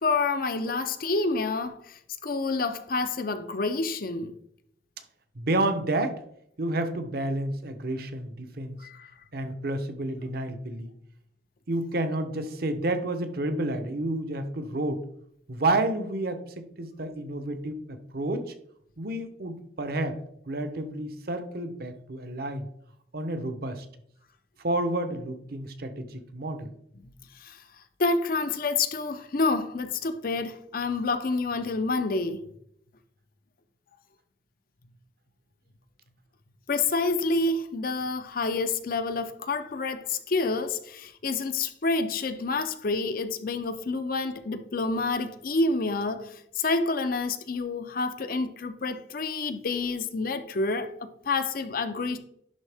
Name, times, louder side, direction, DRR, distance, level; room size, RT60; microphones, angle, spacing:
voice 1, 0.0-4.3 8.8-9.1 27.4-27.6 28.0-32.4 36.7-52.2, left 3 dB, 55° left, 0.6 m, -28 dB
voice 2, 5.3-6.2 6.6-8.8 9.3-10.9 11.7-15.0 15.5-18.5 19.0-20.2 20.5-22.7 23.1-23.8 24.6-26.7, right 2 dB, 60° right, 0.8 m, -30 dB
10.5 x 3.6 x 3.5 m
head